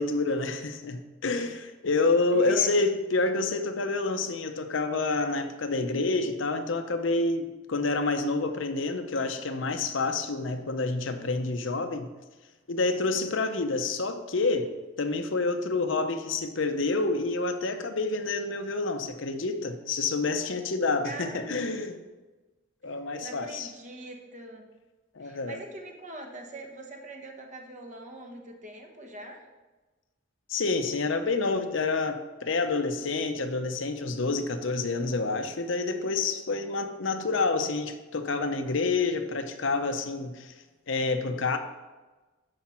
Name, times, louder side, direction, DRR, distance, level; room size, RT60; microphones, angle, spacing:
voice 1, 0.0-12.1 12.7-22.0 22.8-23.7 25.1-25.6 30.5-40.6 40.9-41.6, left 3 dB, 65° left, 7 dB, 0.7 m, -28 dB
voice 2, 2.3-2.8 21.0-21.8 23.2-24.7 25.2-29.5, right 1 dB, 40° right, 3 dB, 1.2 m, -43 dB
12.0 x 5.0 x 4.4 m, 1.2 s
head